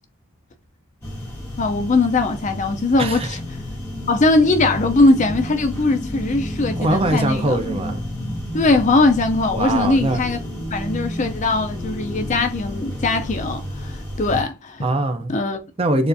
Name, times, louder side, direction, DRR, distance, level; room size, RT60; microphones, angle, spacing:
sound 1, 1.0-14.4, equal, 10° left, 1.3 m, -30 dB
voice 1, 1.6-3.4 4.1-7.6 8.5-10.4 10.7-14.8 15.3-15.6, left 2 dB, 35° left, 0.5 m, -20 dB
voice 2, 3.0-3.4 6.8-8.1 9.5-10.2 14.8-15.3 15.8-16.1, right 1 dB, 25° right, 0.5 m, -22 dB
6.8 x 2.5 x 2.6 m
head